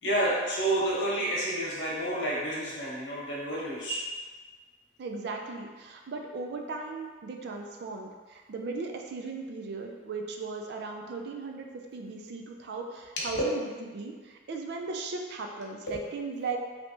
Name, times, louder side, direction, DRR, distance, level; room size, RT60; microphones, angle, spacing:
voice 1, 0.0-4.0 13.2-13.4 15.9-16.0, right 1 dB, 75° left, -6 dB, 1.0 m, -29 dB
voice 2, 5.0-13.6 13.9-16.6, right 4 dB, 60° right, 3 dB, 0.4 m, -37 dB
3.3 x 2.8 x 2.7 m, 1.4 s
head